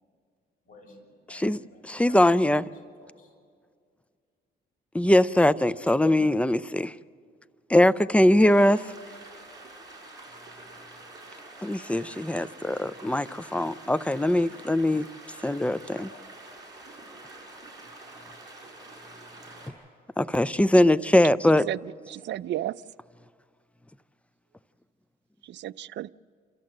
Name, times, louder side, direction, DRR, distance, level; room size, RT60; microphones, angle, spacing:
voice 1, 0.6-3.3, left 2 dB, 45° left, 6.8 m, -54 dB
voice 2, 1.9-2.6 4.9-6.9 7.7-8.8 11.6-15.1 15.4-16.1 20.2-21.6, left 1 dB, 5° left, 0.5 m, -21 dB
sound 1, 8.4-19.7, right 2 dB, 20° right, 6.7 m, -47 dB
voice 3, 21.7-22.8 25.4-26.1, right 13 dB, 65° right, 0.4 m, -33 dB
29.5 x 14.0 x 7.6 m
cardioid pair, 90°, 20 cm